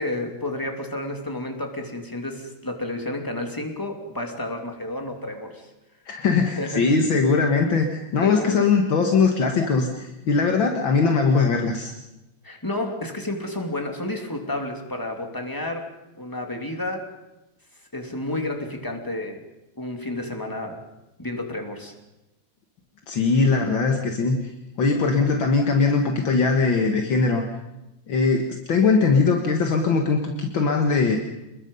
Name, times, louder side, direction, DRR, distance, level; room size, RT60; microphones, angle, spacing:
voice 1, 0.0-5.7 6.5-6.8 8.2-8.6 12.4-15.9 16.2-17.1 17.9-19.4 19.8-20.8 21.2-21.9, left 1 dB, 10° left, 3 dB, 2.8 m, -31 dB
voice 2, 6.1-7.9 8.1-11.9 23.1-24.4 24.8-27.4 28.1-31.2, left 4 dB, 70° left, 3 dB, 2.4 m, -20 dB
29.0 x 20.5 x 5.5 m, 0.96 s
omnidirectional pair, 2.2 m